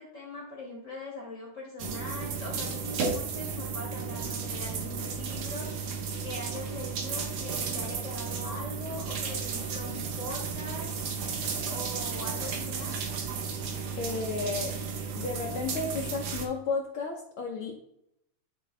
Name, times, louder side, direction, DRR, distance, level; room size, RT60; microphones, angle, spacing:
voice 1, 0.0-10.9 11.6-12.9, left 1 dB, 45° left, -3 dB, 1.0 m, -41 dB
sound 1, 1.8-16.5, right 5 dB, 70° right, 1.3 m, -34 dB
voice 2, 13.9-14.8 15.1-17.8, left 4 dB, 80° left, -1 dB, 1.2 m, -33 dB
11.5 x 3.8 x 3.2 m, 0.75 s
omnidirectional pair, 3.5 m